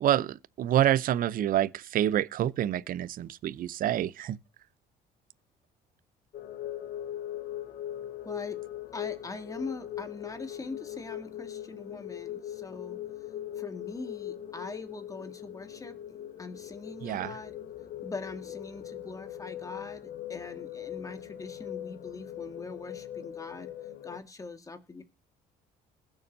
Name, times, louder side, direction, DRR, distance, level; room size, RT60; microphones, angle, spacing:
voice 1, 0.0-4.4 17.0-17.3, right 11 dB, 55° right, 0.6 m, -27 dB
sound 1, 6.3-24.2, left 12 dB, 60° left, 1.4 m, -40 dB
voice 2, 8.2-8.6 8.9-16.0 16.4-17.6 18.0-25.0, left 3 dB, 20° left, 1.9 m, -42 dB
21.0 x 7.1 x 2.7 m
cardioid pair, 110°, 17 cm